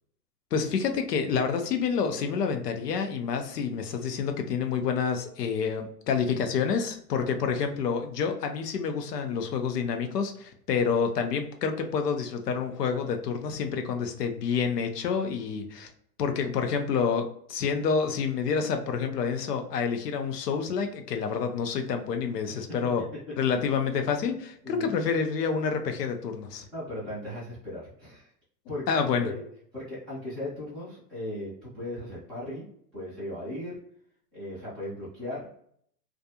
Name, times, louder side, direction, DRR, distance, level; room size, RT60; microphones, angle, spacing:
voice 1, 0.5-15.9 16.2-23.0 23.4-26.7 28.9-29.3, left 6 dB, 75° left, 6 dB, 0.7 m, -28 dB
voice 2, 26.7-28.3 28.7-29.5 29.7-32.6 32.9-33.7 34.3-35.4, left 1 dB, ahead, -12 dB, 0.4 m, -37 dB
2.5 x 2.3 x 2.7 m, 0.66 s
hypercardioid pair, 135°, 48 cm